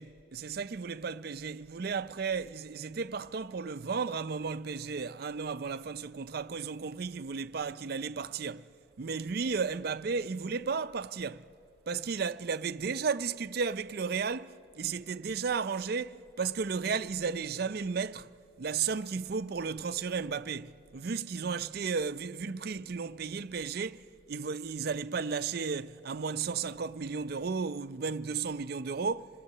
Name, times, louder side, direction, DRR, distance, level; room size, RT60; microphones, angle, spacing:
voice 1, 0.0-8.7 9.0-11.5 11.9-18.3 18.6-29.3, right 5 dB, 50° right, 0.5 m, -34 dB
27.0 x 18.5 x 6.6 m
head